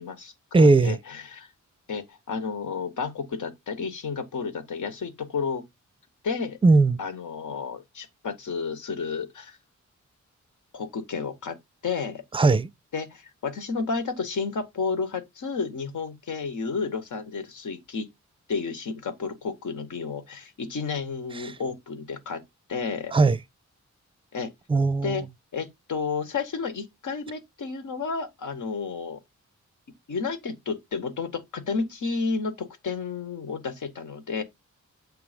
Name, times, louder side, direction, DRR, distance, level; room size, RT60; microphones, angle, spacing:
voice 1, 0.0-1.5 1.9-5.6 6.2-6.6 7.0-9.6 10.7-11.6 11.8-12.2 12.9-18.1 18.5-22.4 22.7-23.2 24.3-24.5 25.0-25.2 25.5-29.2 30.1-34.4, left 5 dB, 85° left, 1.5 m, -31 dB
voice 2, 0.5-1.0 6.6-7.0 12.3-12.7 21.4-21.5 23.1-23.4 24.7-25.2, right 3 dB, 20° right, 0.4 m, -18 dB
7.8 x 3.4 x 5.1 m
wide cardioid pair, 130°, 30 cm